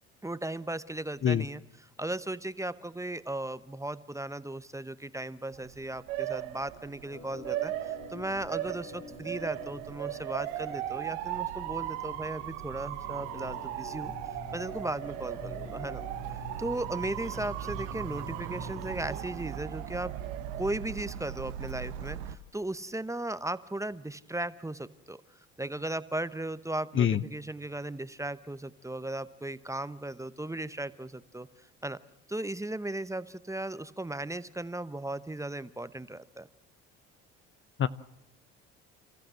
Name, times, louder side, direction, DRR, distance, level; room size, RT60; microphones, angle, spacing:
voice 1, 0.2-1.6 2.0-14.1 14.5-16.0 16.3-20.1 20.5-25.2 25.6-32.0 32.3-36.5, right 1 dB, 10° right, 15 dB, 0.9 m, -36 dB
voice 2, 1.2-1.5 26.9-27.2 37.8-37.9, left 9 dB, 35° left, 15 dB, 0.7 m, -24 dB
Motor vehicle (road) / Siren, 5.5-22.3, right 13 dB, 80° right, 1.2 m, -37 dB
Organ, 7.1-19.2, left 5 dB, 50° left, 2.9 m, -47 dB
30.0 x 14.5 x 7.8 m, 0.84 s
hypercardioid pair, 70°, 34 cm